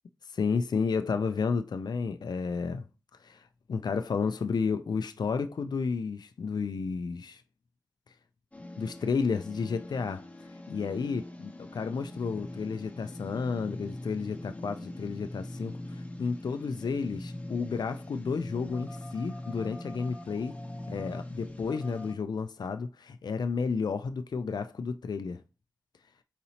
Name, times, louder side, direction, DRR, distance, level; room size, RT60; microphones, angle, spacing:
voice 1, 0.3-2.8 3.2-7.4 8.8-10.2 10.7-20.6 20.9-25.4, left 5 dB, 80° left, 0.3 m, -32 dB
sound 1, 8.5-22.1, left 1 dB, 20° left, 0.8 m, -42 dB
4.1 x 4.0 x 2.8 m
wide cardioid pair, 75°, 7 cm